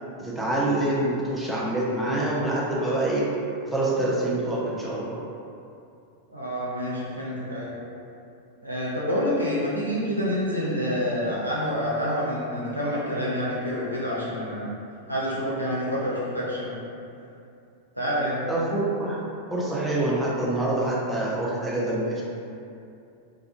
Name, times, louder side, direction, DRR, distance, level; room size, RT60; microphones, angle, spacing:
voice 1, 0.2-3.2 3.7-5.2 18.5-19.2 19.5-22.2, right 1 dB, 5° right, -7 dB, 0.5 m, -26 dB
voice 2, 6.3-7.7 8.6-14.7 15.1-16.8 18.0-18.5, equal, 90° right, -8 dB, 0.6 m, -27 dB
2.5 x 2.4 x 2.5 m, 2.6 s
figure-of-eight pair, 90°, 0 cm